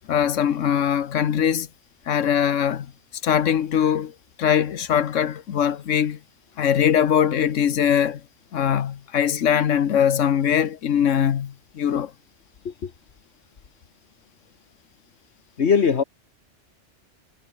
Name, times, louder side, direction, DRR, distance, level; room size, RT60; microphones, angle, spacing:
voice 1, 0.1-1.7 2.1-2.9 3.2-6.2 6.6-8.2 8.5-12.1, left 9 dB, 80° left, 1.3 m, -21 dB
voice 2, 15.6-16.0, left 6 dB, 60° left, 1.6 m, -20 dB
omnidirectional pair, 1.3 m